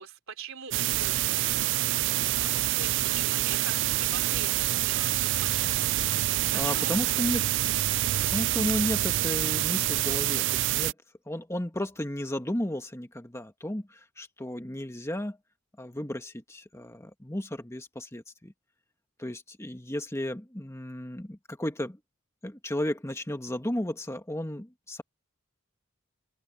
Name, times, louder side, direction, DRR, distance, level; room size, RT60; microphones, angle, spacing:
voice 1, 0.0-4.5 4.8-5.9 6.5-7.4, right 6 dB, 80° right, 3.6 m, -43 dB
sound 1, 0.7-10.9, right 14 dB, 60° right, 0.3 m, -27 dB
voice 2, 6.5-7.4 8.3-10.9 11.3-15.4 15.8-18.5 19.2-22.0 22.4-25.0, left 1 dB, 15° left, 1.6 m, -33 dB
open air
head